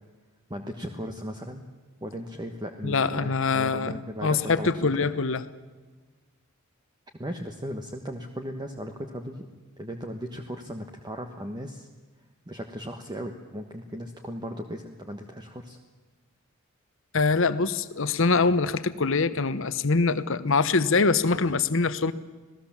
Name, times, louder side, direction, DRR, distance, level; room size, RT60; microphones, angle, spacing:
voice 1, 0.5-1.6 2.0-4.7 5.0-5.1 7.2-9.5 9.8-11.9 12.5-15.8, equal, 20° right, 4 dB, 1.3 m, -37 dB
voice 2, 2.8-5.4 17.1-22.1, left 4 dB, 65° left, 13 dB, 1.1 m, -24 dB
27.0 x 17.5 x 7.4 m, 1.3 s
head